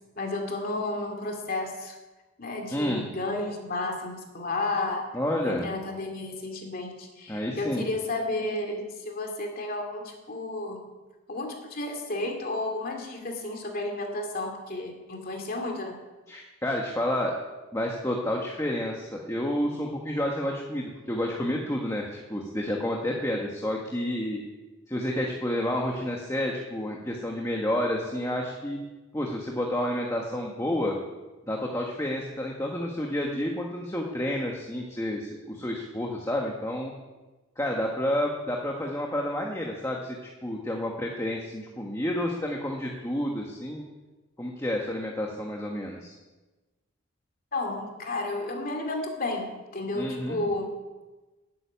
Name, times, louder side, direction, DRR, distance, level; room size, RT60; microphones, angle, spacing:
voice 1, 0.2-2.0 2.4-5.1 5.4-10.9 11.3-16.0 47.5-50.7, left 2 dB, 40° left, 3 dB, 2.6 m, -32 dB
voice 2, 2.7-3.1 5.1-5.7 7.3-7.8 16.3-17.3 17.7-24.4 24.9-28.8 29.1-30.9 31.5-36.9 37.6-40.0 40.4-43.8 44.4-46.1 49.9-50.4, left 1 dB, 15° left, 0 dB, 1.5 m, -30 dB
14.5 x 9.4 x 9.5 m, 1.2 s
head